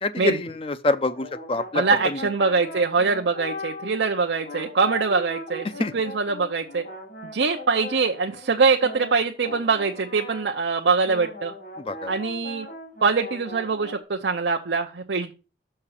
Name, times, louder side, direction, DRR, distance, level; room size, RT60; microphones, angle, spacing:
voice 1, 0.0-2.2 5.8-5.9 11.9-12.1, left 2 dB, 30° left, 0.5 m, -26 dB
sound 1, 1.0-4.1 4.4-10.8 11.0-14.0, left 1 dB, 65° left, 2.8 m, -39 dB
voice 2, 1.7-6.8 7.3-11.5 12.1-12.7 13.0-15.3, right 4 dB, 85° right, 0.7 m, -23 dB
6.6 x 5.7 x 5.6 m
head